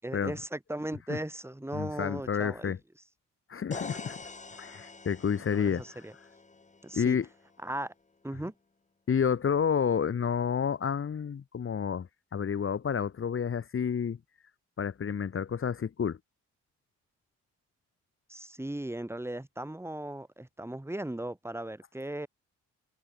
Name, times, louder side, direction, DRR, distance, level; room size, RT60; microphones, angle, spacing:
voice 1, 0.0-2.8 5.5-6.1 6.8-7.2 7.6-7.9 8.2-8.5 18.3-22.3, right 1 dB, 10° right, 7.8 m, -37 dB
voice 2, 1.7-2.8 3.5-4.2 4.6-6.0 6.9-7.2 9.1-14.2 14.8-16.2, left 7 dB, 45° left, 2.7 m, -30 dB
sound 1, 3.7-7.5, left 3 dB, 25° left, 5.3 m, -45 dB
cardioid pair, 90°, 30 cm